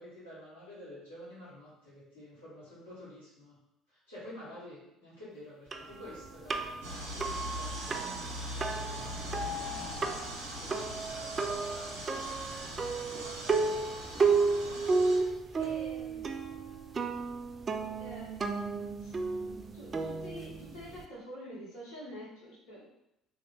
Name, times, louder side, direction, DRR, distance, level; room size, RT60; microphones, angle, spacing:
voice 1, 0.0-3.6 3.9-9.4 10.0-12.0 12.3-13.9, left 1 dB, 85° left, -14 dB, 1.3 m, -51 dB
sound 1, 5.7-21.1, right 4 dB, 30° right, 0.3 m, -33 dB
sound 2, 6.8-15.2, equal, 75° right, 0.8 m, -41 dB
voice 2, 14.6-16.4 18.0-18.7 19.0-22.9, equal, 65° left, -5 dB, 1.4 m, -47 dB
2.8 x 2.5 x 3.4 m, 0.82 s
figure-of-eight pair, 55°, 0 cm